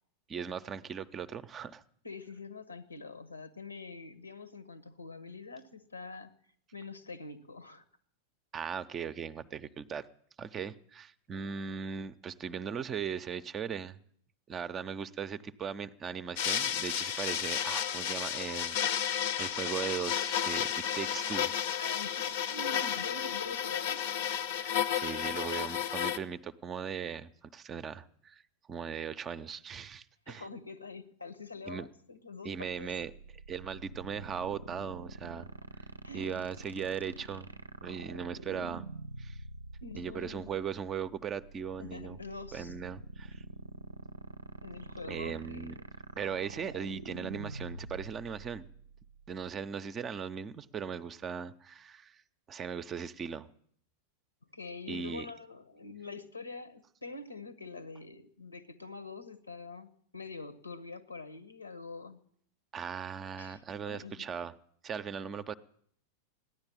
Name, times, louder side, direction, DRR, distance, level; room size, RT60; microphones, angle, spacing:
voice 1, 0.3-1.8 8.5-10.1 10.4-14.0 14.5-21.5 24.6-28.4 28.7-30.5 31.7-31.9 32.4-33.1 33.5-35.5 36.1-37.5 37.8-38.9 39.2-39.4 40.0-42.2 42.5-43.4 45.1-45.8 46.1-48.7 49.3-52.2 52.5-53.5 54.9-55.3 62.7-64.5 64.8-65.5, right 7 dB, 25° right, 13 dB, 0.6 m, -38 dB
voice 2, 2.0-6.3 6.7-7.8 21.8-24.0 30.3-32.9 36.0-36.4 39.8-40.6 41.8-42.8 44.6-45.8 54.5-62.2 63.4-64.2, left 3 dB, 80° left, 14 dB, 1.2 m, -45 dB
sound 1, 16.4-26.2, left 9 dB, 50° left, 0.8 m, -32 dB
sound 2, 32.6-49.7, right 2 dB, 75° right, 0.6 m, -46 dB
15.0 x 10.5 x 8.7 m, 0.64 s
figure-of-eight pair, 90°, 0 cm